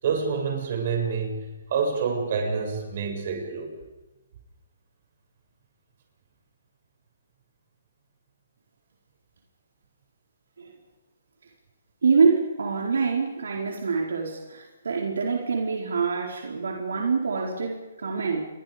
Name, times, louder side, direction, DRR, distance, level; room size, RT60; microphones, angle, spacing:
voice 1, 0.0-3.7, right 5 dB, 45° right, 2 dB, 7.5 m, -27 dB
voice 2, 12.0-18.5, right 5 dB, 85° right, 0 dB, 4.6 m, -25 dB
29.5 x 24.0 x 5.3 m, 1.1 s
hypercardioid pair, 165°, 0 cm